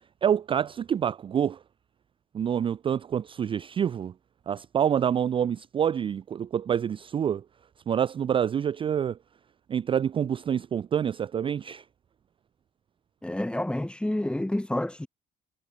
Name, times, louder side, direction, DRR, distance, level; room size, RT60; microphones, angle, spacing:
voice 1, 0.2-1.6 2.3-4.1 4.5-7.4 7.9-9.2 9.7-11.8, right 8 dB, 30° right, 0.4 m, -27 dB
voice 2, 13.2-15.1, left 1 dB, 5° left, 2.3 m, -29 dB
cardioid pair, 110°, 17 cm